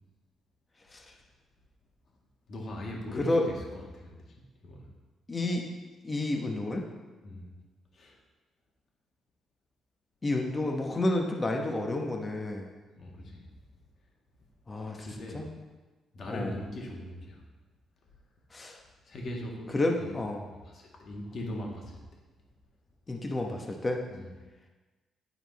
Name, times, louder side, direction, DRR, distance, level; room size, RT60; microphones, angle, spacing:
voice 1, 2.5-4.2 4.6-4.9 7.2-7.5 7.9-8.2 13.0-13.4 15.0-15.5 16.1-17.4 19.1-19.7 20.0-22.0 24.1-24.3, left 1 dB, 55° left, -1 dB, 1.7 m, -40 dB
voice 2, 5.3-5.6 6.0-6.8 10.2-12.7 14.7-15.0 15.3-15.5 16.3-16.5 18.5-18.8 19.7-20.4 23.1-24.0, left 2 dB, 25° left, 1 dB, 1.0 m, -30 dB
10.0 x 4.3 x 4.1 m, 1.2 s
cardioid pair, 90°, 0 cm